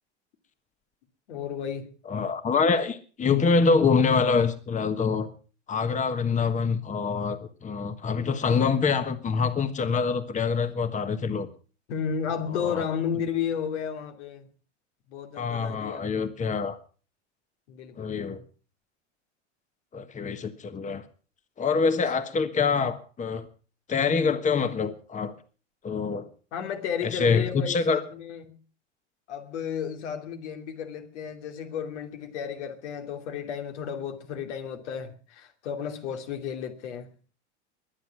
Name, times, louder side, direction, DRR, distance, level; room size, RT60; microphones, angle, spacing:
voice 1, 1.3-1.9 11.9-14.5 15.1-16.3 17.7-18.4 22.0-22.1 26.5-28.6 29.3-37.1, left 7 dB, 70° left, 2.9 m, -33 dB
voice 2, 2.1-5.3 5.7-11.5 12.5-12.9 15.4-16.8 18.0-18.4 19.9-21.0 21.6-23.5 23.9-25.3 25.8-26.3 27.0-28.0, left 5 dB, 20° left, 1.4 m, -25 dB
22.0 x 9.7 x 6.0 m
hypercardioid pair, 95°, 36 cm